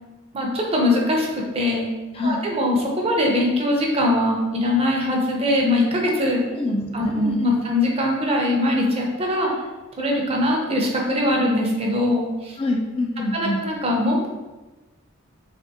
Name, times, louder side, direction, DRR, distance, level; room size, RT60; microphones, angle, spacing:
voice 1, 0.3-1.9 2.2-6.4 6.9-9.5 10.0-12.6 13.3-14.3, left 1 dB, 30° right, -1 dB, 0.6 m, -22 dB
voice 2, 6.5-7.6 12.6-13.6, left 2 dB, 30° left, 1 dB, 0.3 m, -26 dB
3.5 x 3.4 x 2.8 m, 1.2 s
head